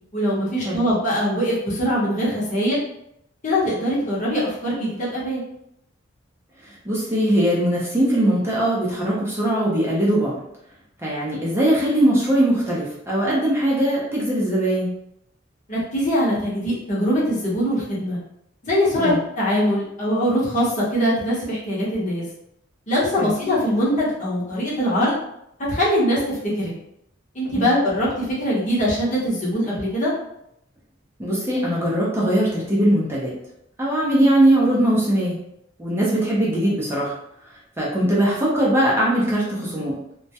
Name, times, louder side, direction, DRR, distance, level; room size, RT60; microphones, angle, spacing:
voice 1, 0.1-2.8 3.4-5.4 15.7-18.2 18.6-22.2 22.9-25.1 25.6-26.7 27.3-30.1, equal, 40° left, -6 dB, 0.8 m, -22 dB
voice 2, 6.8-10.4 11.0-14.9 19.0-19.2 23.2-23.3 27.5-27.7 31.2-33.3 33.8-35.4 35.8-37.1 37.8-40.0, right 1 dB, 15° right, -6 dB, 0.5 m, -20 dB
2.2 x 2.1 x 2.7 m, 0.78 s
head